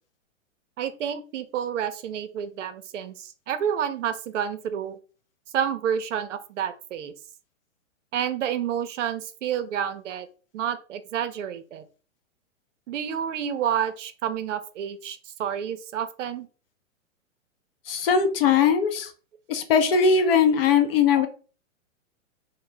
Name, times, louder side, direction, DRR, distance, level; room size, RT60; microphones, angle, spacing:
voice 1, 0.8-5.0 5.5-7.1 8.1-10.3 10.5-11.8 12.9-16.5 21.1-21.3, right 9 dB, 70° right, 11 dB, 0.5 m, -29 dB
voice 2, 17.9-19.1 19.5-21.3, left 6 dB, 50° left, 7 dB, 0.6 m, -20 dB
2.7 x 2.1 x 3.2 m, 0.37 s
hypercardioid pair, 140°, 39 cm